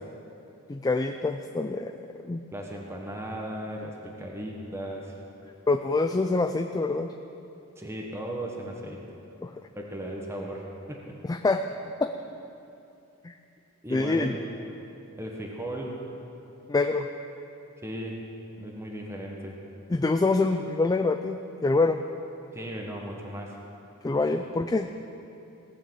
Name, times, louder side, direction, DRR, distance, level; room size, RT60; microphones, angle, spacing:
voice 1, 0.7-1.9 2.2-2.4 5.7-7.1 9.4-9.5 11.2-11.6 12.0-12.1 13.2-13.3 13.9-14.4 16.7-17.1 19.9-22.0 24.0-24.9, left 3 dB, 15° left, 7 dB, 0.4 m, -25 dB
voice 2, 2.5-5.2 7.8-9.0 9.7-11.1 13.8-14.4 15.2-16.0 17.8-18.2 18.6-19.6 22.5-23.6, right 1 dB, 10° right, -1 dB, 1.2 m, -36 dB
17.5 x 6.7 x 7.6 m, 2.8 s
head